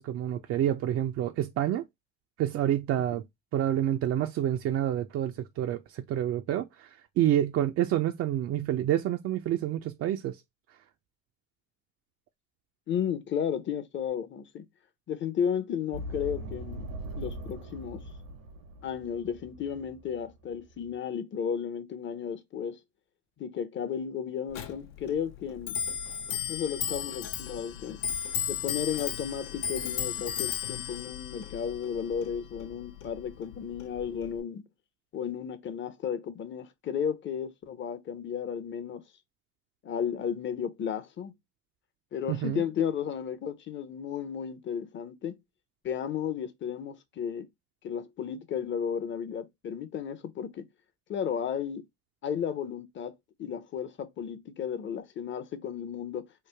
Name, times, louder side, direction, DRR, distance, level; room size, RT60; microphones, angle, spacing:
voice 1, 0.0-1.8 2.4-3.2 3.5-10.4 42.3-42.6, right 11 dB, 40° right, 0.4 m, -28 dB
voice 2, 12.9-14.6 15.1-16.9 17.2-18.0 18.8-22.8 23.4-25.8 26.5-28.0 28.5-34.6 35.1-39.0 39.8-41.3 42.1-45.4 45.8-47.5 47.8-50.7 51.1-51.8 52.2-53.1 53.4-56.3, left 8 dB, 30° left, 0.6 m, -33 dB
sound 1, 15.9-21.0, right 1 dB, 85° right, 1.1 m, -41 dB
Clock, 24.5-34.4, left 9 dB, 65° left, 0.7 m, -35 dB
3.2 x 2.1 x 3.2 m
hypercardioid pair, 80°, 39 cm